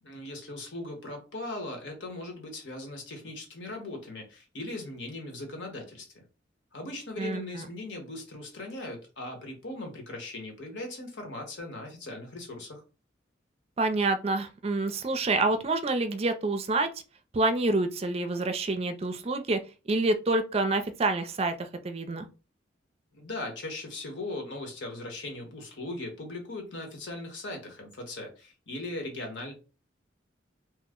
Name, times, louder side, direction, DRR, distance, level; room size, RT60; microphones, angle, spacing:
voice 1, 0.0-6.2 6.7-12.8 23.1-29.5, left 2 dB, 75° left, 1.1 m, -39 dB
voice 2, 7.2-7.7 13.8-16.9 17.3-19.6 19.9-22.3, right 2 dB, 35° right, 0.4 m, -27 dB
3.1 x 2.0 x 3.5 m
head